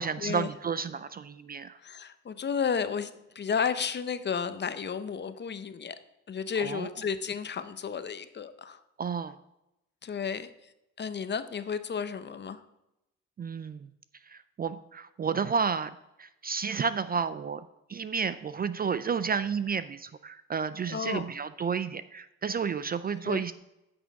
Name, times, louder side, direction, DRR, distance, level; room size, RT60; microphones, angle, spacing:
voice 1, 0.0-1.8 6.6-6.9 9.0-9.4 13.4-13.9 14.2-15.9 16.2-23.5, right 6 dB, 30° right, 14 dB, 0.4 m, -31 dB
voice 2, 1.8-6.0 6.3-8.8 10.0-10.5 11.0-12.6 20.9-21.2 23.2-23.4, left 6 dB, 35° left, 12 dB, 0.7 m, -32 dB
9.2 x 6.2 x 4.7 m, 0.91 s
cardioid pair, 90°, 30 cm